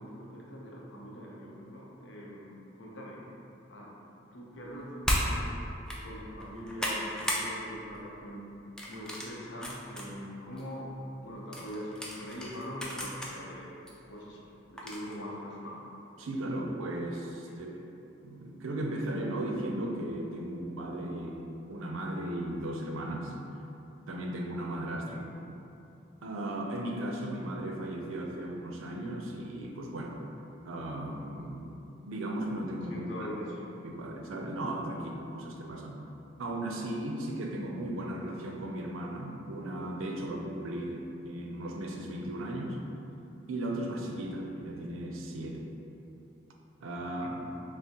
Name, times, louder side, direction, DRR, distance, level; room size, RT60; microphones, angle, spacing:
voice 1, 0.0-3.2 3.7-3.9 4.3-5.5 6.0-8.4 8.9-10.9 11.2-13.7 14.1-15.8 16.5-16.6 24.9-25.3 32.9-33.7 47.2-47.4, equal, 70° left, -4 dB, 0.7 m, -42 dB
sound 1, 5.0-5.3 5.8-6.0 6.4-7.5 7.8-8.1 8.8-10.1 10.6-10.7 11.5-13.3 13.9-14.0 14.8-15.1, equal, 5° left, 0.3 m, -34 dB
voice 2, 16.2-17.7 18.2-21.4 21.7-23.3 24.1-25.2 26.2-30.3 30.6-33.3 33.8-36.0 36.4-42.8 43.5-45.7 46.8-47.4, right 1 dB, 90° right, 1 dB, 0.5 m, -36 dB
5.8 x 2.1 x 2.8 m, 2.9 s
head